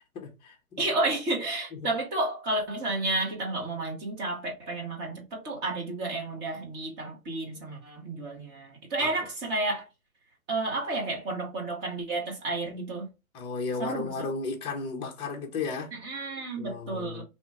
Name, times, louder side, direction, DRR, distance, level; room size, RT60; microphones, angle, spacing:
voice 1, 0.1-0.8 1.7-1.9 9.0-9.3 13.3-15.9 16.6-17.2, left 4 dB, 15° left, 0.6 m, -34 dB
voice 2, 0.8-9.8 10.5-13.1 13.8-14.1 16.0-17.2, right 2 dB, 25° right, 1.1 m, -31 dB
3.0 x 2.3 x 4.3 m
hypercardioid pair, 140°, 42 cm